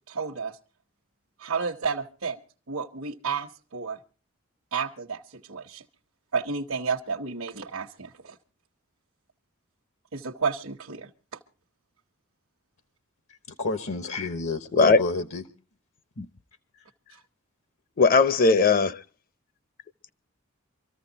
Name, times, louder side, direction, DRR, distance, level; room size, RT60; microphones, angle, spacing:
voice 1, 0.1-0.6 1.4-2.4 2.7-4.0 4.7-5.8 6.3-8.4 10.1-11.4, right 5 dB, 85° right, 1.1 m, -31 dB
voice 2, 13.3-15.4 16.7-16.8, left 3 dB, 75° left, 1.2 m, -30 dB
voice 3, 14.7-15.0 16.2-16.3 18.0-19.0, left 4 dB, 45° left, 0.6 m, -19 dB
25.0 x 14.5 x 2.8 m
head